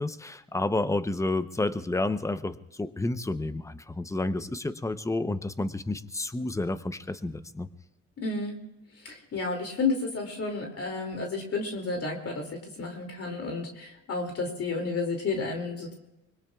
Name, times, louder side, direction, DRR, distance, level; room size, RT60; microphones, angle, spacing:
voice 1, 0.0-7.7, left 2 dB, 10° left, 12 dB, 0.8 m, -30 dB
voice 2, 8.2-8.6 9.0-15.9, left 3 dB, 50° left, 2 dB, 2.6 m, -31 dB
25.0 x 21.5 x 2.4 m, 0.92 s
cardioid pair, 90°, 30 cm